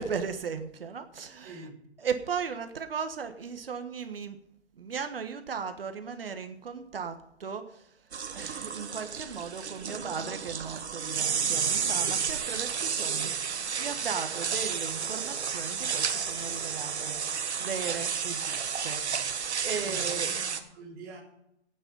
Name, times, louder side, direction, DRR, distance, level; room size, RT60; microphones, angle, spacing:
voice 1, 0.0-1.6 2.0-4.4 4.8-7.9 8.3-17.2 17.6-20.3, right 6 dB, 55° right, 7 dB, 1.4 m, -37 dB
voice 2, 1.4-1.8 19.8-21.2, right 2 dB, 10° right, -3 dB, 1.4 m, -45 dB
sound 1, 8.1-20.6, right 6 dB, 70° right, 1.6 m, -31 dB
15.0 x 9.2 x 5.4 m, 0.80 s
hypercardioid pair, 180°, 35 cm